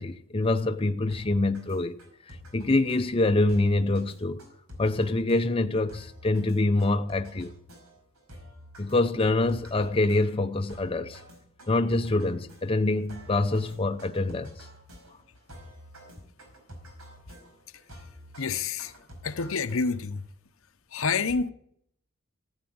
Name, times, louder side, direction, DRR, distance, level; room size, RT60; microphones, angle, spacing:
voice 1, 0.0-2.0 2.3-4.4 4.8-7.5 8.8-11.2 11.7-14.7, left 2 dB, 25° left, 0.7 m, -25 dB
sound 1, 1.1-20.2, equal, 90° right, 5.2 m, -49 dB
voice 2, 18.4-18.9 19.2-20.2 20.9-21.5, left 5 dB, 65° left, 0.8 m, -28 dB
15.0 x 9.0 x 8.6 m
head